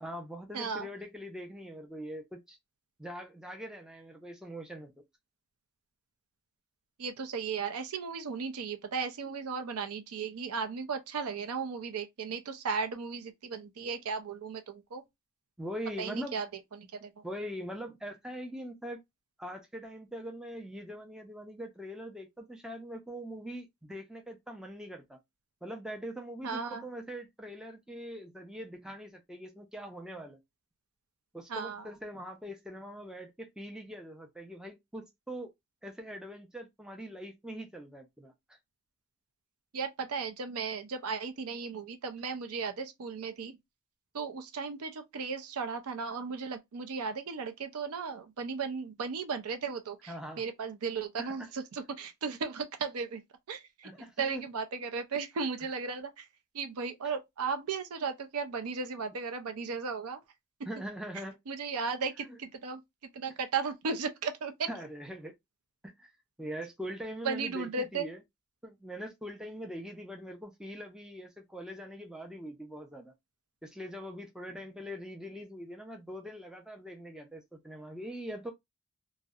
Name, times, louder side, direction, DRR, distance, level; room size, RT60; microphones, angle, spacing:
voice 1, 0.0-2.6 3.0-4.9 15.6-16.4 17.2-19.0 19.4-25.2 25.6-30.4 31.3-35.5 35.8-38.6 50.1-50.5 51.2-51.5 53.8-54.4 60.7-61.4 62.2-62.4 64.6-65.3 65.8-66.1 66.4-68.2 68.6-73.1 73.6-78.5, equal, 5° right, 0.4 m, -42 dB
voice 2, 0.5-0.9 7.0-15.0 16.0-16.5 16.8-17.1 26.4-26.8 31.5-31.9 39.7-43.6 44.1-53.2 53.5-53.9 54.2-56.3 56.5-60.2 61.5-62.8 63.1-64.7 67.2-68.1, right 5 dB, 85° right, 0.5 m, -35 dB
2.6 x 2.0 x 2.3 m
head